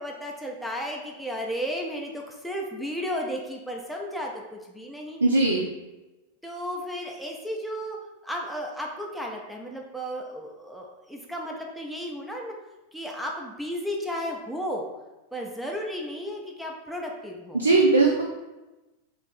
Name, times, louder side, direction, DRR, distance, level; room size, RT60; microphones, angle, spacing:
voice 1, 0.0-5.2 6.4-8.0 8.2-12.5 12.9-14.9 15.3-17.7, equal, ahead, -1 dB, 0.4 m, -34 dB
voice 2, 5.2-5.6 17.5-18.2, right 3 dB, 80° right, -2 dB, 0.4 m, -19 dB
2.7 x 2.5 x 3.9 m, 1.1 s
figure-of-eight pair, 90°, 0 cm